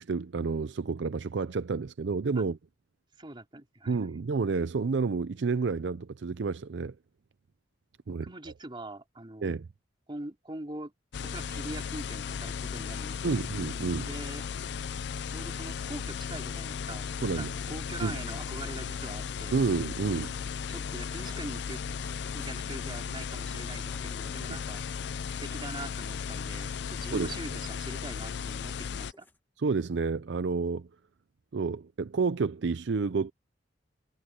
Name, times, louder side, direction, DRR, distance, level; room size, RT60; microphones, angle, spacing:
voice 1, 0.0-2.6 3.9-6.9 8.1-8.3 9.4-9.7 13.2-14.1 17.2-17.5 18.0-18.2 19.5-20.3 27.1-27.3 29.6-30.9 31.5-33.3, right 4 dB, 75° right, 0.5 m, -30 dB
voice 2, 3.2-4.1 8.1-9.6 10.1-10.9 11.2-13.4 14.0-14.5 15.3-17.1 17.3-19.6 20.7-21.8 22.3-24.8 25.4-29.3, right 2 dB, 25° right, 2.9 m, -42 dB
sound 1, 11.1-29.1, left 6 dB, 65° left, 0.4 m, -36 dB
sound 2, 18.2-29.4, left 2 dB, 10° left, 1.8 m, -58 dB
head